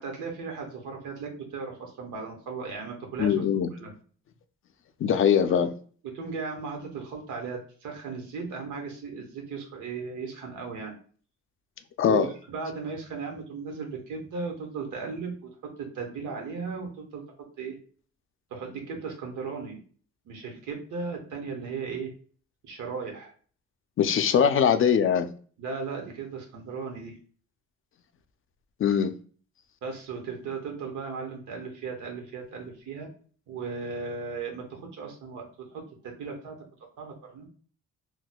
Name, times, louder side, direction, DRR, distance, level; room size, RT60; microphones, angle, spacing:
voice 1, 0.0-3.4 3.7-3.9 6.1-10.9 12.1-15.5 15.8-17.2 17.6-17.8 18.5-19.8 20.2-22.1 22.6-23.3 25.6-27.1 29.8-33.1 33.5-36.6 37.0-37.5, right 5 dB, 85° right, 1.0 m, -36 dB
voice 2, 3.2-3.7 5.0-5.7 12.0-12.3 24.0-25.3 28.8-29.1, left 8 dB, 45° left, 0.4 m, -22 dB
4.0 x 2.2 x 2.2 m
cardioid pair, 90°, 30 cm